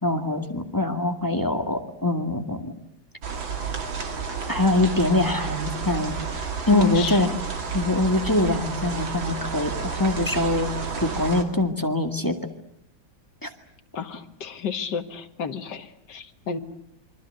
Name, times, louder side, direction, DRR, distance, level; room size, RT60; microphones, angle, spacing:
voice 1, 0.0-2.7 4.5-6.2 6.7-7.3 7.7-10.7 11.0-12.4 13.4-13.5, left 2 dB, 10° left, 5 dB, 2.0 m, -23 dB
sound 1, 3.2-11.4, right 5 dB, 75° right, 3.3 m, -31 dB
voice 2, 6.7-7.4 13.9-16.6, left 6 dB, 60° left, 8 dB, 2.1 m, -32 dB
27.5 x 24.0 x 7.9 m, 0.71 s
omnidirectional pair, 2.2 m